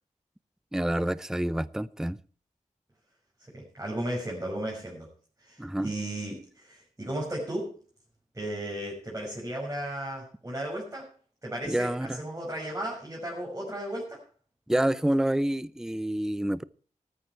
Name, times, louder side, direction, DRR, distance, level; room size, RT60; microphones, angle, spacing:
voice 1, 0.7-2.2 5.6-5.9 11.6-12.2 14.7-16.6, right 1 dB, 5° right, 0.5 m, -28 dB
voice 2, 3.5-5.1 5.4-7.7 8.3-11.1 11.4-14.2, right 1 dB, 20° right, 6.0 m, -35 dB
14.0 x 13.0 x 4.5 m
wide cardioid pair, 70°, 13 cm